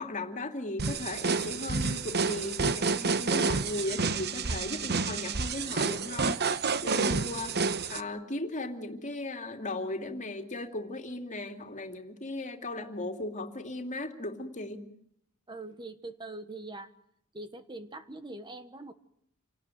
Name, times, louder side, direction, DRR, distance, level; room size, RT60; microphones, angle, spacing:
voice 1, 0.0-6.4 6.8-7.6 7.9-14.8, left 2 dB, 35° left, 6 dB, 2.8 m, -37 dB
sound 1, 0.8-8.0, right 4 dB, 50° right, 1.1 m, -29 dB
voice 2, 15.5-16.9 17.3-18.9, right 2 dB, 20° right, 10 dB, 1.3 m, -42 dB
28.0 x 18.5 x 9.2 m, 0.71 s
head